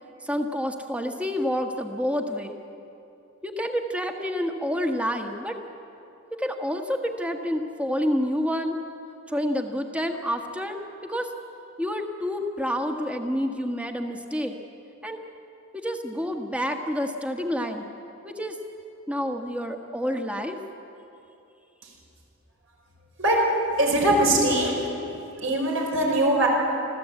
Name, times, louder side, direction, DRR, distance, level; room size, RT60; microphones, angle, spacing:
voice 1, 0.2-2.6 3.4-5.5 6.3-8.8 9.3-11.3 11.8-14.6 15.0-15.2 15.7-17.9 18.2-18.6 19.1-20.6, equal, 5° right, 4 dB, 1.4 m, -28 dB
voice 2, 23.8-24.9 25.4-26.5, right 1 dB, 75° right, 0 dB, 5.2 m, -21 dB
26.0 x 15.0 x 8.4 m, 2.8 s
head